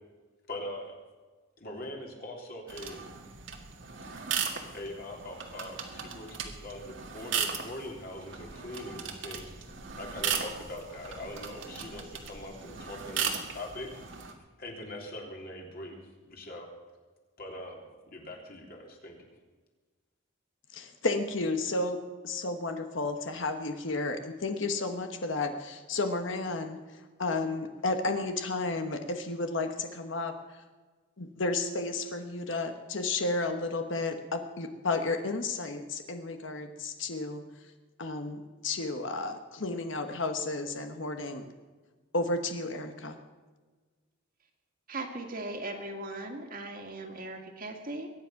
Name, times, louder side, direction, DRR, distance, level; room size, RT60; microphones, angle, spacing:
voice 1, 0.5-1.0 1.6-3.0 4.7-9.5 10.0-14.0 14.6-16.7 17.4-19.3, left 1 dB, 45° left, 0 dB, 3.4 m, -42 dB
sound 1, 2.7-14.3, right 7 dB, 65° right, 1.8 m, -37 dB
voice 2, 20.7-30.6 31.2-37.4 38.0-41.5 42.1-43.2, left 3 dB, 65° left, 6 dB, 1.2 m, -32 dB
voice 3, 44.9-48.1, right 2 dB, 45° right, 3 dB, 2.1 m, -38 dB
22.5 x 9.7 x 5.9 m, 1.3 s
head